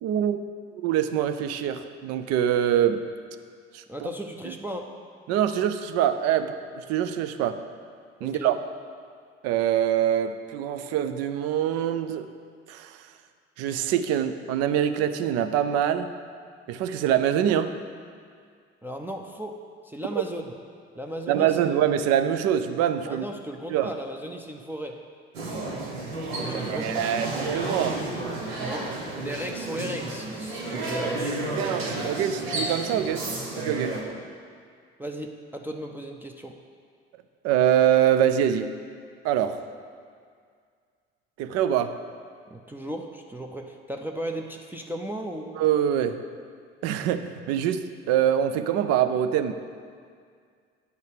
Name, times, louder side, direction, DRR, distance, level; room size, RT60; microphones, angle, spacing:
voice 1, 0.0-0.4 0.7-3.0 3.7-4.1 4.5-4.6 5.3-7.6 8.2-8.6 9.4-12.3 12.7-13.1 13.6-16.1 16.7-17.7 21.3-23.2 23.7-23.9 26.5-28.0 31.6-33.2 33.5-34.0 37.4-38.7 39.2-39.6 41.4-42.0 45.6-46.2 46.8-49.5, right 10 dB, 50° right, 10 dB, 0.5 m, -24 dB
voice 2, 3.9-5.0 8.2-8.6 18.8-20.5 20.9-21.6 23.1-25.0 26.4-27.1 28.6-31.6 35.0-36.6 42.5-45.6, right 1 dB, 5° right, 1 dB, 0.5 m, -36 dB
sound 1, 25.3-34.0, right 2 dB, 80° right, 1.1 m, -32 dB
9.3 x 4.0 x 6.6 m, 2.1 s
figure-of-eight pair, 50°, 32 cm